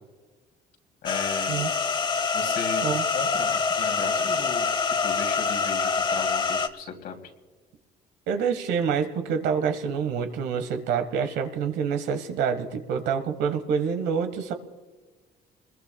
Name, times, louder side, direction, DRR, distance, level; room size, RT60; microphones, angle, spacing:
voice 1, 1.0-1.7 2.3-2.8 3.1-4.7 5.0-7.2, left 6 dB, 65° left, 3 dB, 2.9 m, -36 dB
sound 1, 1.1-6.7, left 5 dB, 30° left, 0.9 m, -25 dB
voice 2, 8.3-14.5, right 6 dB, 85° right, 8 dB, 1.4 m, -27 dB
28.0 x 21.0 x 2.3 m, 1.3 s
cardioid pair, 110°, 17 cm